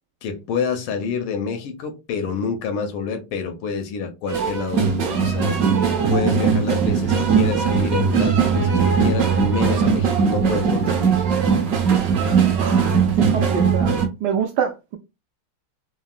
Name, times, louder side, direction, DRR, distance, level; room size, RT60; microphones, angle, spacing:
voice 1, 0.2-5.6 6.1-11.2, left 5 dB, 90° left, 1.6 m, -27 dB
sound 1, 4.3-14.1, right 6 dB, 60° right, 0.9 m, -19 dB
voice 2, 12.6-13.0 13.3-13.9 14.2-15.0, right 8 dB, 90° right, 0.9 m, -25 dB
3.9 x 2.0 x 2.4 m
omnidirectional pair, 2.3 m